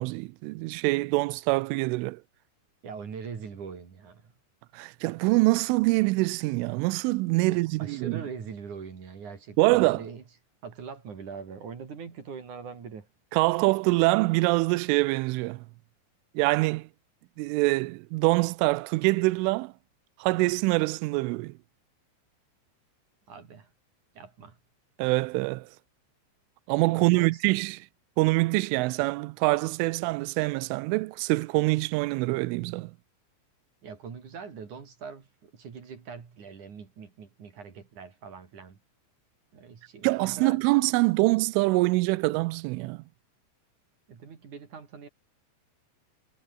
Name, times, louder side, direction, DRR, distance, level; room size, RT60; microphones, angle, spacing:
voice 1, 0.0-2.2 4.7-8.2 9.6-10.0 13.3-15.6 16.4-16.9 17.4-19.7 20.2-21.5 25.0-25.7 26.7-27.9 28.2-32.9 40.0-43.0, right 23 dB, 90° right, 3.2 m, -25 dB
voice 2, 2.8-4.3 7.5-10.2 10.6-13.1 23.3-23.7 24.1-24.6 26.9-27.4 33.8-38.8 39.5-40.6 44.1-45.1, right 6 dB, 45° right, 4.1 m, -42 dB
omnidirectional pair, 5.6 m